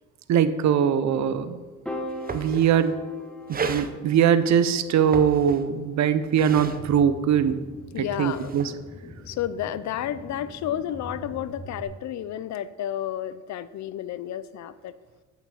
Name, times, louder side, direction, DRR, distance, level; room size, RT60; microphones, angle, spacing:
voice 1, 0.3-1.6 2.3-3.0 3.5-7.6 8.0-8.7, right 8 dB, 65° right, 12 dB, 0.7 m, -21 dB
sound 1, 1.6-1.7 2.0-2.9 3.5-3.9 4.9-5.8 6.2-6.8 8.0-8.6, right 4 dB, 30° right, 0.7 m, -34 dB
Piano, 1.9-8.2, left 1 dB, 5° left, 1.1 m, -41 dB
sound 2, 6.8-11.8, left 1 dB, 25° left, 1.9 m, -44 dB
voice 2, 7.9-8.5 9.3-14.9, left 11 dB, 65° left, 16 dB, 0.5 m, -31 dB
8.7 x 6.4 x 4.9 m, 1.3 s
cardioid pair, 90°, 30 cm